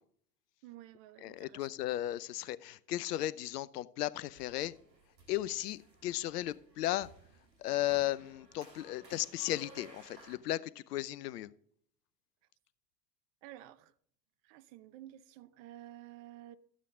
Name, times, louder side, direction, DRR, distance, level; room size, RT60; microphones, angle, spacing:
voice 1, 0.6-1.7 13.4-13.9 14.4-16.6, right 14 dB, 50° right, 0.8 m, -52 dB
voice 2, 1.2-4.8 5.3-7.1 7.6-11.5, left 14 dB, 70° left, 0.7 m, -35 dB
sound 1, 4.3-10.4, right 2 dB, 85° right, 2.1 m, -58 dB
12.5 x 8.3 x 3.7 m
figure-of-eight pair, 75°, 49 cm